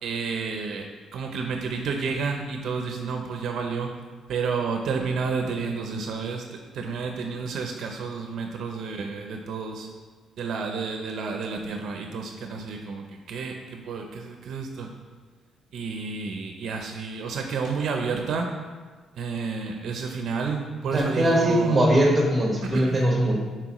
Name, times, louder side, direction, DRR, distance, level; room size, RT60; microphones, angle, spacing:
voice 1, 0.0-0.8 1.1-3.9 4.3-9.9 10.4-14.9 15.7-18.5 19.2-21.8 22.7-23.0, right 5 dB, 65° right, 3 dB, 0.5 m, -30 dB
voice 2, 20.9-23.3, right 1 dB, 10° right, -2 dB, 1.3 m, -21 dB
7.6 x 4.5 x 3.0 m, 1.4 s
cardioid pair, 145°, 0 cm